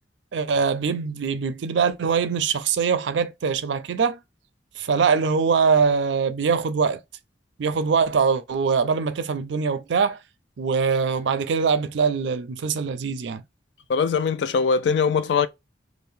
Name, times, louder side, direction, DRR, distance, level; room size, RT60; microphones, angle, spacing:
voice 1, 0.3-4.2 4.8-7.0 7.6-10.2 10.6-13.4, right 5 dB, 75° right, 0.4 m, -23 dB
voice 2, 13.9-15.5, left 5 dB, 70° left, 0.3 m, -21 dB
2.7 x 2.0 x 3.4 m
head